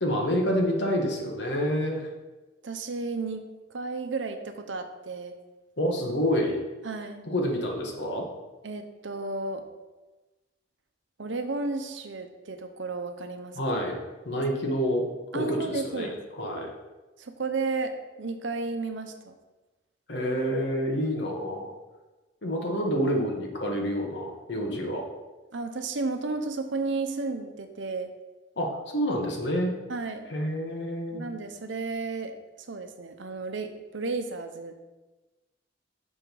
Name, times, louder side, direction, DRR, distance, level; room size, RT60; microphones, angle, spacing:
voice 1, 0.0-2.1 5.8-6.6 7.3-8.3 13.6-14.0 14.2-15.1 15.3-16.1 16.4-16.7 20.1-21.7 22.4-25.1 28.6-29.7 30.3-31.2, equal, 65° left, 1 dB, 1.3 m, -28 dB
voice 2, 2.6-3.4 3.7-5.4 6.8-7.2 8.6-9.6 11.2-13.6 15.3-16.2 17.2-17.9 18.2-19.3 25.5-28.1 29.9-30.3 31.1-34.7, right 3 dB, 80° right, 7 dB, 0.7 m, -33 dB
6.3 x 5.3 x 4.6 m, 1.2 s
head